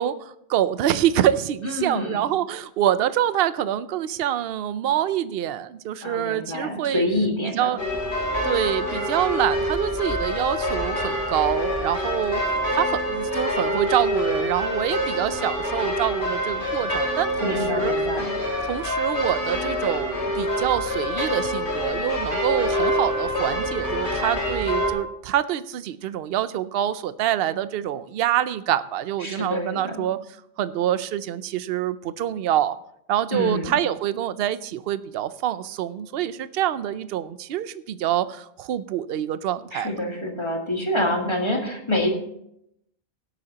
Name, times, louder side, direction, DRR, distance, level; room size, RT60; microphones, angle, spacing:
voice 1, 0.0-7.0 7.5-7.8 8.4-12.4 12.7-18.0 18.6-30.2 30.6-32.8 33.1-39.9, right 11 dB, 65° right, 14 dB, 0.7 m, -26 dB
voice 2, 1.6-2.3 6.0-7.7 17.4-18.3 29.2-30.0 33.3-33.8 39.7-42.1, left 1 dB, 25° left, 1 dB, 1.9 m, -26 dB
sound 1, 7.8-24.9, equal, 45° left, 2.7 m, -26 dB
17.5 x 8.4 x 2.9 m, 0.76 s
omnidirectional pair, 1.2 m